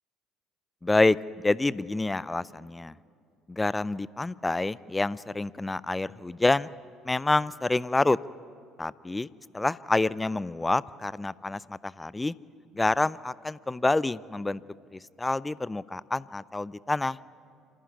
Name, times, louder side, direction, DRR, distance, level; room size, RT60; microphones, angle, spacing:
voice 1, 0.8-1.2 1.4-2.9 3.5-6.7 7.1-8.2 8.8-9.3 9.5-12.3 12.7-14.6 14.9-17.2, left 2 dB, 15° left, 21 dB, 0.5 m, -27 dB
26.5 x 15.0 x 9.5 m, 2.4 s
figure-of-eight pair, 55°, 0 cm